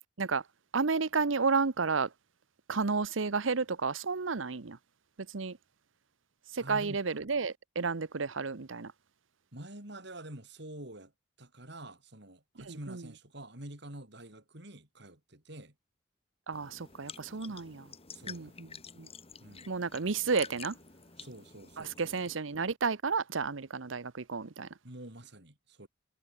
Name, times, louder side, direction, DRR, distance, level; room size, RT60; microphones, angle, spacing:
voice 1, 0.7-2.1 2.7-4.8 5.3-5.6 6.5-8.9 12.6-13.1 16.5-17.9 18.3-18.7 19.0-19.1 19.7-20.7 21.8-24.7, right 4 dB, 80° right, 0.9 m, -32 dB
voice 2, 6.6-7.0 9.5-11.1 11.4-15.7 17.4-17.7 18.1-18.7 19.4-19.7 21.2-22.2 24.8-25.9, right 1 dB, 60° right, 5.6 m, -47 dB
sound 1, 16.5-22.4, left 6 dB, 30° left, 2.3 m, -49 dB
head